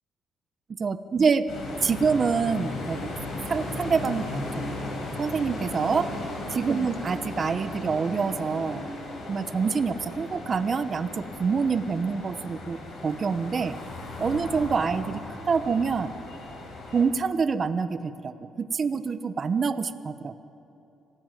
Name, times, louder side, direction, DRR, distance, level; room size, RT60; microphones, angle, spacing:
voice 1, 0.8-1.5 1.8-3.1 3.5-4.5 5.2-6.1 6.5-8.9 9.3-13.7 14.2-15.2 15.5-16.1 16.9-20.5, right 5 dB, 45° right, 12 dB, 1.0 m, -26 dB
sound 1, 1.5-17.0, left 2 dB, 70° left, 5.5 m, -36 dB
25.5 x 16.0 x 9.2 m, 3.0 s
cardioid pair, 90°, 0 cm